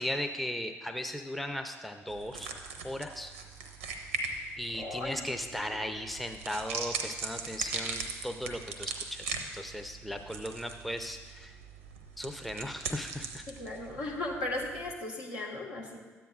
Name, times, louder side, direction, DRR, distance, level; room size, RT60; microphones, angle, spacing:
voice 1, 0.0-2.5 2.8-3.3 4.6-11.5 12.2-13.4, equal, ahead, 6 dB, 0.7 m, -37 dB
sound 1, 2.1-14.9, right 4 dB, 80° right, 0.7 m, -40 dB
voice 2, 4.8-5.6 13.5-16.0, left 2 dB, 65° left, -3 dB, 1.7 m, -37 dB
13.0 x 9.0 x 2.5 m, 1.4 s
figure-of-eight pair, 45°, 7 cm